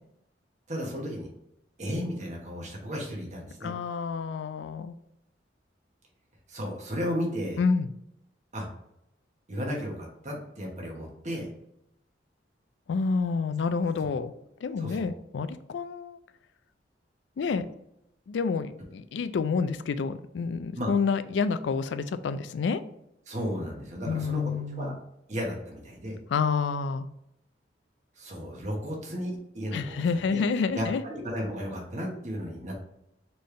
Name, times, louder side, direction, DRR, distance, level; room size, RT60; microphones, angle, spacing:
voice 1, 0.7-1.3 1.8-3.7 6.5-7.6 8.5-8.7 9.5-11.5 14.8-15.1 20.7-20.9 23.3-24.9 25.3-26.2 28.2-30.0 30.3-30.4 30.7-32.7, equal, 40° right, 0 dB, 1.2 m, -34 dB
voice 2, 3.6-5.0 7.6-7.9 12.9-14.3 14.6-16.2 17.4-17.7 18.3-22.8 24.1-25.0 26.3-27.1 29.7-31.0, left 5 dB, 85° left, 12 dB, 0.4 m, -28 dB
4.3 x 3.3 x 3.2 m, 0.81 s
head